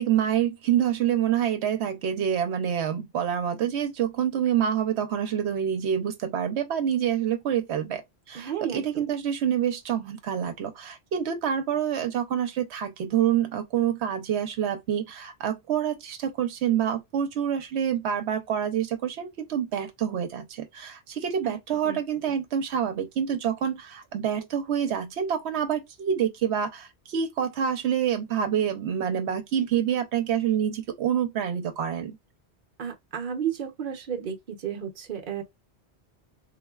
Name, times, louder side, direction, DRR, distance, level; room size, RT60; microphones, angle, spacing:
voice 1, 0.0-8.0 8.3-32.2, right 9 dB, 85° right, 0.9 m, -27 dB
voice 2, 8.3-9.0 21.4-21.6 21.8-22.0 32.8-35.4, right 8 dB, 50° right, 0.8 m, -32 dB
3.7 x 2.0 x 2.3 m
omnidirectional pair, 1.1 m